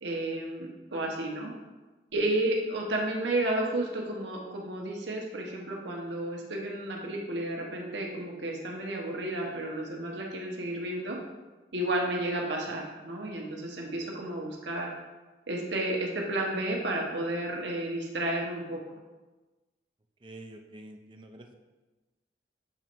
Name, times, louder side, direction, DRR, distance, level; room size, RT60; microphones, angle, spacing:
voice 1, 0.0-1.5 2.1-11.2 11.7-14.9 15.5-18.8, right 1 dB, 80° right, -1 dB, 1.0 m, -32 dB
voice 2, 20.2-21.5, right 1 dB, 25° right, 4 dB, 0.4 m, -47 dB
7.0 x 3.0 x 4.5 m, 1.2 s
head